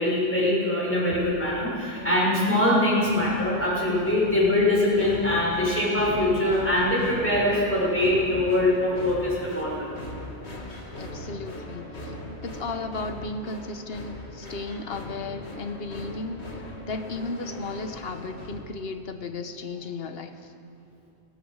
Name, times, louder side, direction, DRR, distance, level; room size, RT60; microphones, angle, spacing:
voice 1, 0.0-9.9, left 1 dB, 10° left, -7 dB, 6.1 m, -23 dB
sound 1, 3.0-18.6, left 1 dB, 80° left, 2.3 m, -39 dB
voice 2, 11.0-20.5, left 3 dB, 65° left, 6 dB, 1.4 m, -35 dB
24.0 x 17.0 x 6.5 m, 2.5 s
omnidirectional pair, 1.1 m